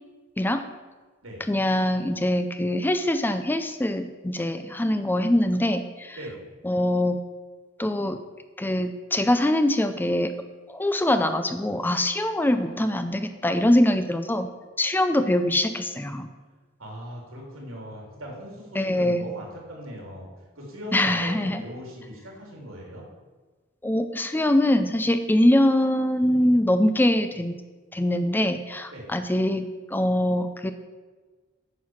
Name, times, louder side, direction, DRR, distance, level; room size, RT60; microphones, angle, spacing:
voice 1, 1.5-6.2 6.6-7.2 7.8-8.2 8.6-10.3 10.7-14.5 14.8-16.3 18.7-19.2 20.9-21.6 23.8-27.6 27.9-29.6 29.9-30.7, left 1 dB, 10° left, 9 dB, 0.4 m, -23 dB
voice 2, 12.5-12.8 16.8-20.3 20.6-23.1 28.9-29.1, equal, 85° right, -1 dB, 3.2 m, -39 dB
9.5 x 5.9 x 7.3 m, 1.3 s
head